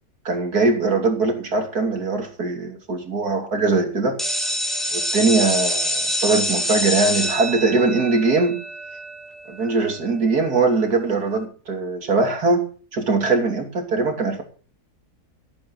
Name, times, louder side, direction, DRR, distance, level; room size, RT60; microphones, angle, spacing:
voice 1, 0.3-4.2 4.9-8.6 9.5-14.4, right 3 dB, 65° right, 4 dB, 3.5 m, -21 dB
sound 1, 4.2-9.8, equal, ahead, 3.5 m, -26 dB
16.5 x 9.1 x 6.2 m, 0.39 s
omnidirectional pair, 1.7 m